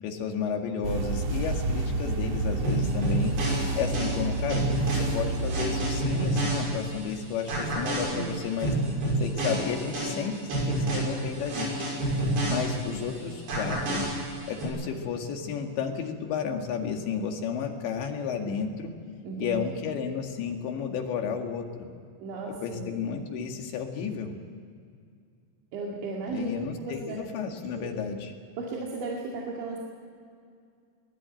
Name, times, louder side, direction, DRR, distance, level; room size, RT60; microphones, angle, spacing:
voice 1, 0.0-3.3 3.8-4.6 5.1-8.7 9.2-11.8 12.5-14.0 14.5-18.9 19.4-21.9 22.5-24.4 26.3-28.3, left 6 dB, 75° left, 3 dB, 4.3 m, -32 dB
sound 1, 0.8-6.0, right 2 dB, 45° right, 2.5 m, -29 dB
sound 2, 2.6-7.1 7.5-13.1 13.5-14.6, right 1 dB, 60° right, 8.3 m, -29 dB
voice 2, 19.2-19.9 22.2-22.9 25.7-27.2 27.7-28.0 28.6-29.8, right 3 dB, 80° right, -2 dB, 4.7 m, -35 dB
22.5 x 20.0 x 9.1 m, 2.3 s
omnidirectional pair, 5.3 m